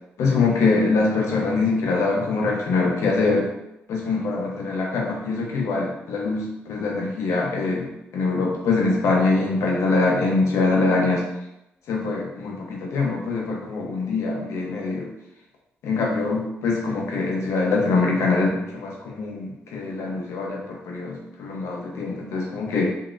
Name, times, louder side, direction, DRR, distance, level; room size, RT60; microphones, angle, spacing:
voice 1, 0.2-3.5 3.9-11.3 11.9-15.1 15.8-22.9, left 3 dB, 75° left, -1 dB, 0.7 m, -23 dB
3.0 x 2.8 x 2.5 m, 0.86 s
supercardioid pair, 65°, 5 cm